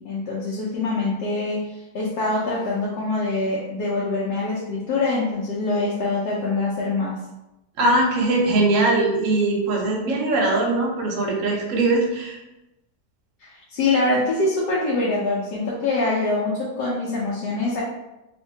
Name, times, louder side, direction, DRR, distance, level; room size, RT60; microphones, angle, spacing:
voice 1, 0.0-7.2 13.4-17.8, left 2 dB, 90° left, -6 dB, 1.2 m, -24 dB
voice 2, 7.8-12.4, right 2 dB, 65° right, -1 dB, 0.9 m, -21 dB
2.8 x 2.6 x 2.6 m, 0.96 s
omnidirectional pair, 1.7 m